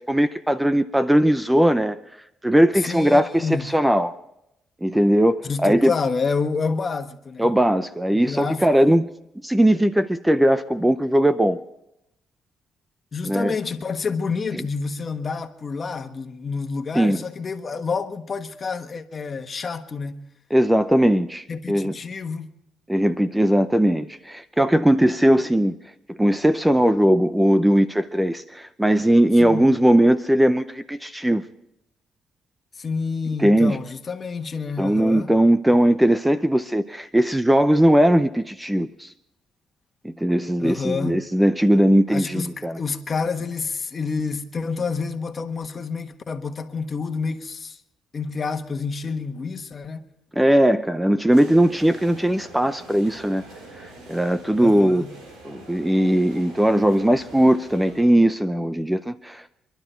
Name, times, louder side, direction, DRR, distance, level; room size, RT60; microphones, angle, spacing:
voice 1, 0.1-2.0 2.4-4.2 4.8-5.9 7.4-9.1 9.4-11.6 13.2-13.5 17.0-17.2 20.5-21.9 22.9-25.8 26.1-31.4 33.4-33.8 34.8-39.1 40.0-42.8 50.4-53.4 54.1-55.0 55.4-59.5, right 1 dB, 5° right, 0.6 m, -19 dB
voice 2, 2.7-3.7 5.4-7.5 8.1-8.9 13.1-20.2 21.5-22.5 29.4-29.7 32.7-35.3 40.6-41.3 42.1-47.8 48.1-50.0 54.6-55.1, left 4 dB, 40° left, 1.4 m, -28 dB
sound 1, 51.3-58.2, right 2 dB, 85° right, 4.2 m, -44 dB
25.5 x 12.0 x 4.5 m
cardioid pair, 90°, 0 cm